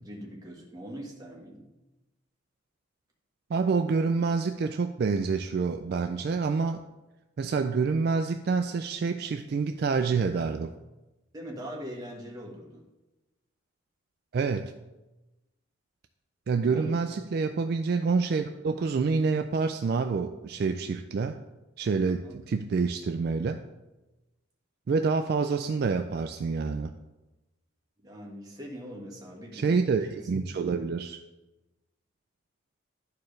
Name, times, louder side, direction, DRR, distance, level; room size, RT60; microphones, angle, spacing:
voice 1, 0.1-1.7 11.3-12.8 16.6-17.1 22.2-22.7 28.0-30.1, equal, 20° right, -2 dB, 1.3 m, -42 dB
voice 2, 3.5-6.8 7.4-10.7 14.3-14.7 16.5-21.4 21.8-23.6 24.9-26.9 29.5-31.2, right 4 dB, 50° right, 8 dB, 0.3 m, -27 dB
11.5 x 4.5 x 3.2 m, 1.0 s
head